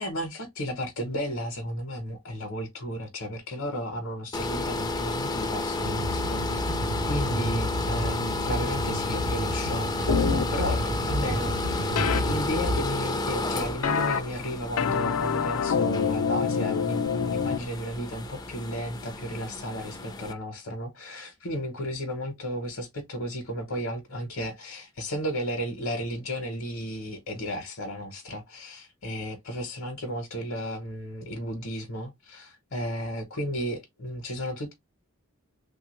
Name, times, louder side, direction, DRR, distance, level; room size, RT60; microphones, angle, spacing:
voice 1, 0.0-6.6 7.0-12.0 12.2-34.7, equal, 65° left, 0.8 m, -33 dB
sound 1, 4.3-20.3, left 2 dB, 20° left, 0.3 m, -32 dB
sound 2, 5.8-12.9, equal, 60° right, 0.5 m, -31 dB
sound 3, 10.1-10.4 12.0-12.2 13.8-14.2 14.8-17.6, left 7 dB, 90° left, 0.4 m, -26 dB
3.2 x 2.3 x 2.9 m
head